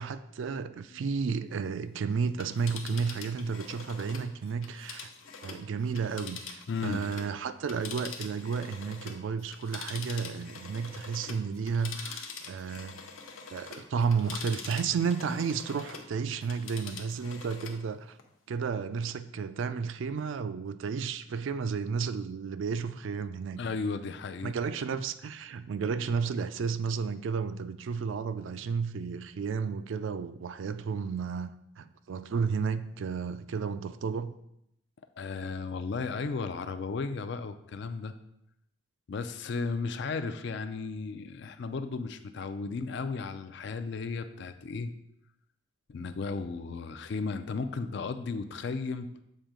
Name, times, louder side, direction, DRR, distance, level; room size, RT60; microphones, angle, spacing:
voice 1, 0.0-5.1 5.4-12.9 13.5-18.2 18.5-23.6 24.4-31.5 31.8-34.3, right 5 dB, 65° right, 0.3 m, -32 dB
Telephone, 2.3-7.3 7.6-16.1 16.4-17.8 18.2-18.3, left 5 dB, 80° left, 0.8 m, -44 dB
voice 2, 6.7-7.1 23.6-24.5 35.2-38.2 39.1-44.9 45.9-49.1, left 4 dB, 55° left, 0.4 m, -34 dB
7.4 x 2.7 x 5.0 m
head